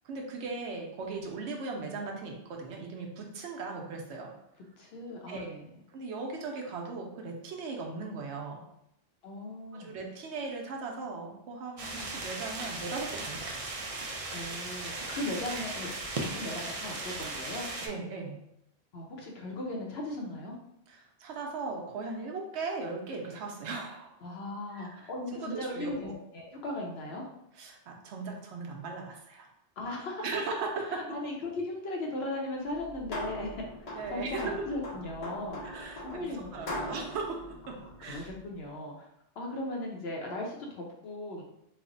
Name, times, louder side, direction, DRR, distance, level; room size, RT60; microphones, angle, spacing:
voice 1, 0.0-4.3 5.3-5.5 5.9-8.6 9.7-13.6 17.8-18.4 20.9-24.2 24.7-24.9 25.3-26.1 27.6-29.5 30.2-31.2 33.9-34.8 35.6-38.3, right 4 dB, 80° right, 1 dB, 0.9 m, -38 dB
voice 2, 4.8-5.7 9.2-9.9 14.3-17.7 18.9-20.6 24.2-27.3 29.8-30.4 30.9-33.6 34.1-37.0 37.6-39.1 39.4-41.4, left 1 dB, 65° left, -1 dB, 0.9 m, -38 dB
sound 1, 11.8-17.9, right 2 dB, 50° right, 0.4 m, -37 dB
sound 2, 32.7-38.5, left 1 dB, 45° left, 0.6 m, -41 dB
3.2 x 2.1 x 3.7 m, 0.79 s
omnidirectional pair, 1.2 m